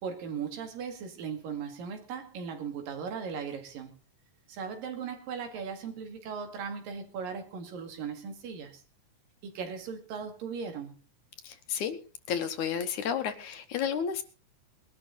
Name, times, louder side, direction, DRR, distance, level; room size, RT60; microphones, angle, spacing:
voice 1, 0.0-3.9 4.5-8.8 9.4-10.9, right 6 dB, 80° right, 3.9 m, -38 dB
voice 2, 11.4-12.0 12.3-14.2, left 8 dB, 65° left, 2.4 m, -31 dB
20.5 x 12.0 x 4.0 m
omnidirectional pair, 4.0 m